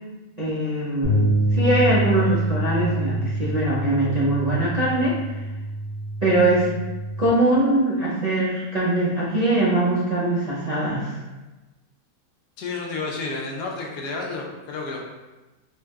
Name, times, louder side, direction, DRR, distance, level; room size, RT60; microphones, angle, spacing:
voice 1, 0.4-1.2 1.5-5.1 6.2-6.7 7.2-11.2, right 1 dB, 80° right, -9 dB, 0.3 m, -22 dB
sound 1, 1.0-7.3, right 1 dB, 65° right, 1.5 m, -26 dB
voice 2, 12.6-15.1, left 3 dB, 70° left, 0 dB, 1.1 m, -31 dB
4.4 x 2.1 x 3.4 m, 1.1 s
omnidirectional pair, 1.9 m